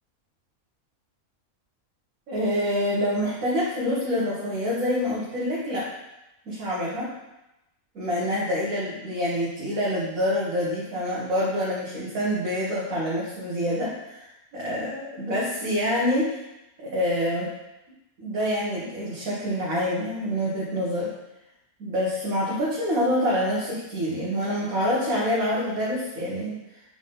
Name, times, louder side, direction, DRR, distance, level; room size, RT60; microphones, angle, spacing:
voice 1, 2.3-5.9 6.5-7.1 7.9-14.2 14.5-16.4 16.8-17.5 18.2-21.1 21.8-26.6, equal, 75° right, -7 dB, 1.7 m, -26 dB
8.0 x 3.7 x 3.9 m, 0.95 s
omnidirectional pair, 1.5 m